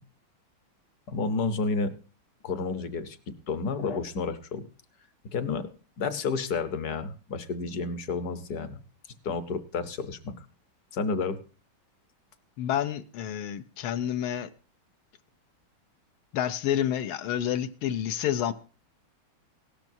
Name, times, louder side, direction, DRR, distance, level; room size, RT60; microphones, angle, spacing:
voice 1, 1.1-1.9 2.4-3.2 3.5-4.7 5.3-5.7 6.0-8.8 9.2-10.3 10.9-11.4, left 4 dB, 55° left, 1.3 m, -30 dB
voice 2, 12.6-14.5 16.3-18.5, left 10 dB, 85° left, 1.6 m, -29 dB
17.0 x 12.0 x 2.6 m
omnidirectional pair, 2.2 m